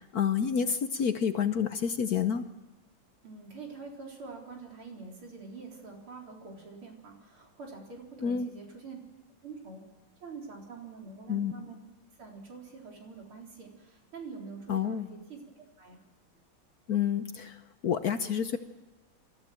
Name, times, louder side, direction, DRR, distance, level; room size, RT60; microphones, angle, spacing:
voice 1, 0.0-2.5 8.2-8.5 11.3-11.5 14.7-15.1 16.9-17.6 17.8-18.6, left 7 dB, 60° left, 10 dB, 1.1 m, -29 dB
voice 2, 3.2-9.0 9.4-9.8 10.2-11.8 12.2-15.4 15.8-16.0, right 4 dB, 85° right, 0 dB, 4.9 m, -45 dB
27.5 x 14.0 x 7.6 m, 1.2 s
omnidirectional pair, 2.3 m